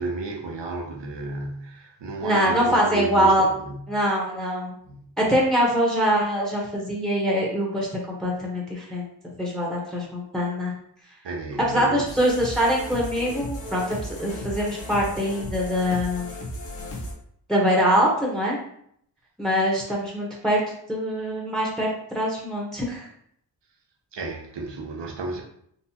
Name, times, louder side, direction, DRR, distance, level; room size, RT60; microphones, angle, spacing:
voice 1, 0.0-3.9 4.8-5.1 11.2-12.2 24.1-25.4, right 2 dB, 90° right, 0.8 m, -33 dB
voice 2, 2.2-3.5 3.9-4.8 5.2-7.9 8.2-9.1 9.4-10.7 11.7-16.3 17.5-18.6 19.4-20.6 20.9-21.9 22.1-23.1, equal, ahead, 0.9 m, -23 dB
sound 1, 12.1-17.1, left 1 dB, 90° left, 0.8 m, -35 dB
4.0 x 2.3 x 2.8 m
wide cardioid pair, 75°, 41 cm